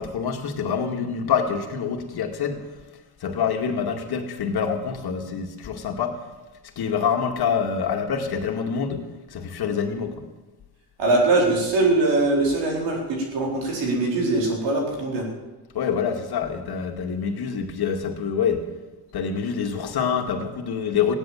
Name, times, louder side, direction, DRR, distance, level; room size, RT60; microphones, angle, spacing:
voice 1, 0.0-2.7 3.2-6.2 6.8-10.3 15.7-18.6 19.1-21.2, left 6 dB, 60° left, 4 dB, 2.2 m, -26 dB
voice 2, 11.0-15.2, right 2 dB, 80° right, -1 dB, 4.5 m, -22 dB
15.5 x 10.5 x 7.3 m, 1.2 s
supercardioid pair, 65°, 42 cm